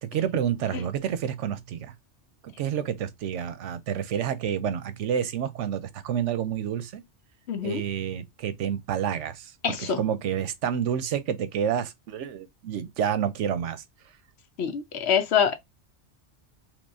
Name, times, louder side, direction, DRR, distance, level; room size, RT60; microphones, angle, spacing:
voice 1, 0.0-1.9 2.4-7.0 7.6-13.8, right 9 dB, 85° right, 1.0 m, -29 dB
voice 2, 7.5-7.8 9.6-10.0 14.6-15.5, left 7 dB, 70° left, 0.9 m, -25 dB
3.6 x 2.9 x 2.6 m
omnidirectional pair, 1.2 m